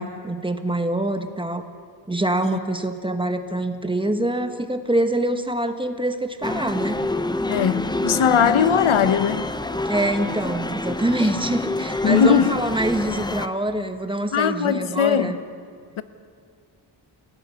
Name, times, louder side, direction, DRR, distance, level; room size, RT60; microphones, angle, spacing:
voice 1, 0.0-1.6 2.1-7.0 9.8-15.4, right 1 dB, 10° right, 1.2 m, -25 dB
sound 1, 6.4-13.5, left 2 dB, 10° left, 0.6 m, -27 dB
voice 2, 7.5-9.5 12.0-12.6 14.3-15.3 16.0-16.1, left 7 dB, 85° left, 1.0 m, -19 dB
29.0 x 17.5 x 6.9 m
wide cardioid pair, 155°, 47 cm